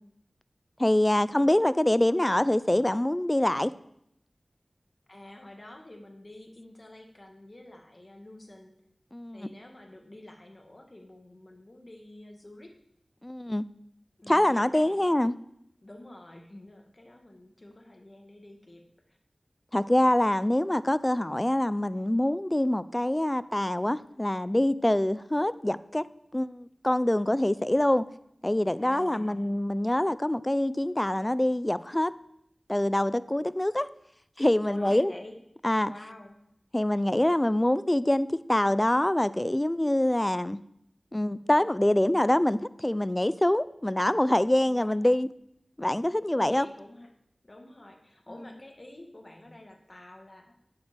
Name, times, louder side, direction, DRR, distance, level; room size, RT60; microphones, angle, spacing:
voice 1, 0.8-3.7 9.1-9.5 13.2-13.7 14.3-15.3 19.7-26.1 26.3-28.1 28.4-32.1 32.7-33.9 34.4-35.1 35.6-35.9 36.7-40.6 41.1-45.3 45.8-46.7, left 1 dB, 20° left, 16 dB, 0.4 m, -25 dB
voice 2, 5.1-8.7 9.3-12.7 14.2-15.1 15.8-19.2 28.8-29.5 34.6-35.4 35.9-36.4 44.6-45.1 46.3-47.1 47.4-50.6, left 1 dB, 40° left, 3 dB, 1.8 m, -48 dB
8.9 x 7.5 x 7.5 m, 0.78 s
wide cardioid pair, 55°, 0 cm